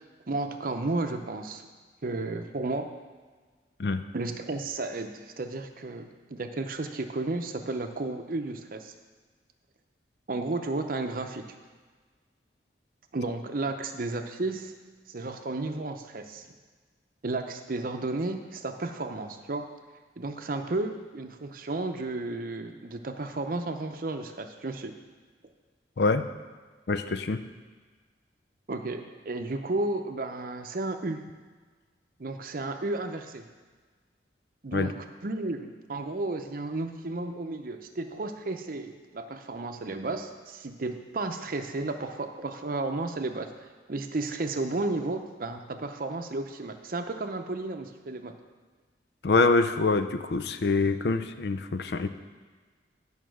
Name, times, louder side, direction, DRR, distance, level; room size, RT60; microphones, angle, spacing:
voice 1, 0.3-1.7 2.0-2.9 4.1-8.9 10.3-11.6 13.1-14.7 15.1-16.5 17.2-19.6 20.2-24.9 28.7-31.2 32.2-33.5 34.6-48.3, right 2 dB, 50° right, 6 dB, 0.6 m, -33 dB
voice 2, 26.0-26.3 26.9-27.4 34.7-34.9 49.2-52.1, left 3 dB, 65° left, 10 dB, 0.5 m, -25 dB
9.1 x 5.5 x 6.3 m, 1.5 s
head